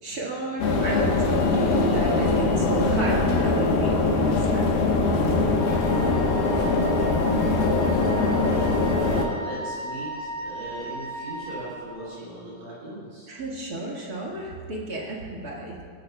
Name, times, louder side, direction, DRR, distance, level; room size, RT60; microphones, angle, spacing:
voice 1, 0.0-4.8 13.3-15.8, right 1 dB, 40° right, -4 dB, 1.4 m, -31 dB
sound 1, 0.6-9.2, left 3 dB, 80° left, 3.1 m, -22 dB
Wind instrument woodwind instrument, 5.6-11.7, right 1 dB, 20° right, 2.7 m, -36 dB
voice 2, 5.7-6.7 7.9-13.3, right 1 dB, 60° right, -8 dB, 4.7 m, -39 dB
19.0 x 13.0 x 2.3 m, 2.2 s
omnidirectional pair, 4.3 m